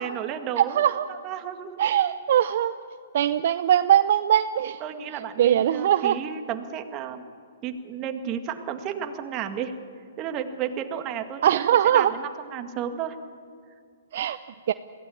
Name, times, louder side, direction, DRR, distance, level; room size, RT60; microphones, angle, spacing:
voice 1, 0.0-0.8 1.1-1.8 4.8-7.2 7.6-9.8 10.2-13.2, right 8 dB, 30° right, 7 dB, 1.9 m, -33 dB
voice 2, 0.6-1.0 1.8-2.7 3.1-4.8 5.4-6.2 11.4-12.1 14.1-14.4 14.7-14.8, right 10 dB, 60° right, 11 dB, 0.6 m, -21 dB
22.0 x 16.0 x 8.7 m, 2.3 s
hypercardioid pair, 135°, 0 cm